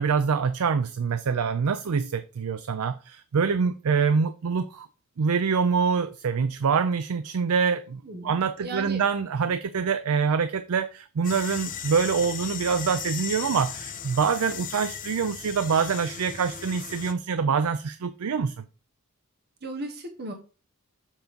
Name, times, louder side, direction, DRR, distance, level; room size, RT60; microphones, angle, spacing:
voice 1, 0.0-4.9 5.2-18.6, right 5 dB, 80° right, 0.5 m, -25 dB
voice 2, 8.0-9.0 19.6-20.3, right 2 dB, 50° right, 1.2 m, -36 dB
sound 1, 11.2-17.1, left 8 dB, 40° left, 0.8 m, -37 dB
7.3 x 3.9 x 5.2 m
head